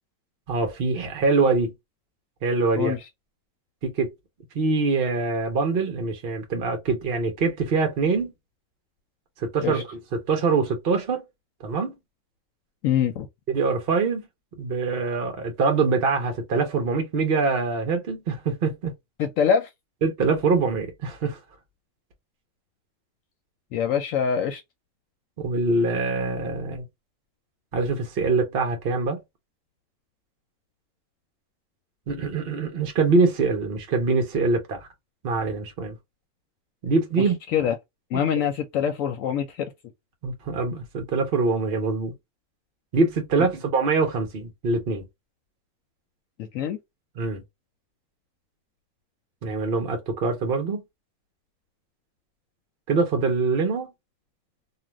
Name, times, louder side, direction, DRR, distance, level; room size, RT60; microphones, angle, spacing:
voice 1, 0.5-1.7 2.4-2.9 3.8-4.1 4.5-8.3 9.4-11.3 11.6-11.9 13.5-14.2 14.6-18.9 20.0-21.4 25.4-26.8 27.7-29.2 32.1-34.9 35.2-36.0 36.8-37.3 38.1-38.2 40.2-42.1 42.9-45.0 47.2-47.4 49.4-50.8 52.9-53.9, right 4 dB, 50° right, 0.9 m, -24 dB
voice 2, 12.8-13.3 19.2-19.7 23.7-24.6 37.2-37.7 38.1-39.7 46.4-46.8, left 8 dB, 70° left, 0.9 m, -24 dB
2.5 x 2.4 x 2.9 m
omnidirectional pair, 1.5 m